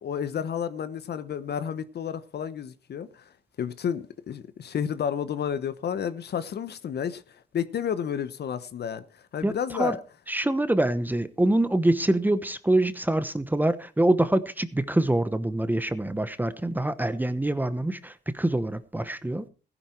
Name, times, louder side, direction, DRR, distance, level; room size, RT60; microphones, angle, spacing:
voice 1, 0.0-3.2 3.6-7.2 7.5-9.0 9.3-10.0, left 8 dB, 55° left, 1.1 m, -31 dB
voice 2, 10.3-19.5, right 1 dB, 10° right, 1.0 m, -25 dB
15.5 x 10.5 x 4.5 m
cardioid pair, 90°, 20 cm